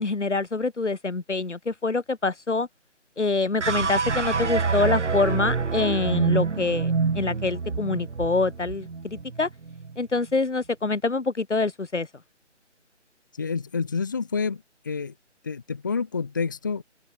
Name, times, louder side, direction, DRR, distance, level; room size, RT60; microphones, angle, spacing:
voice 1, 0.0-2.7 3.2-9.5 10.0-12.1, left 3 dB, 70° left, 5.7 m, -26 dB
sound 1, 3.6-10.0, right 4 dB, 70° right, 1.5 m, -26 dB
voice 2, 13.3-15.1 15.4-16.8, left 5 dB, 15° left, 1.7 m, -28 dB
open air
figure-of-eight pair, 175°, 36 cm